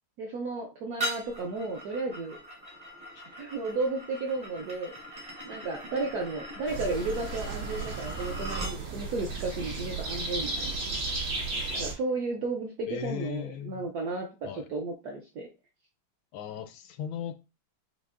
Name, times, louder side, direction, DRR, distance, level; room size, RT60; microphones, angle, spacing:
voice 1, 0.2-2.4 3.4-4.9 5.4-10.8 11.7-15.5, right 3 dB, 70° right, 0.9 m, -33 dB
sound 1, 1.0-8.8, equal, 35° right, 0.6 m, -40 dB
sound 2, 6.7-11.9, right 3 dB, 85° right, 2.6 m, -34 dB
voice 2, 12.9-13.8 14.4-14.7 16.3-17.3, left 10 dB, 75° left, 1.3 m, -37 dB
6.1 x 2.7 x 2.5 m
omnidirectional pair, 2.4 m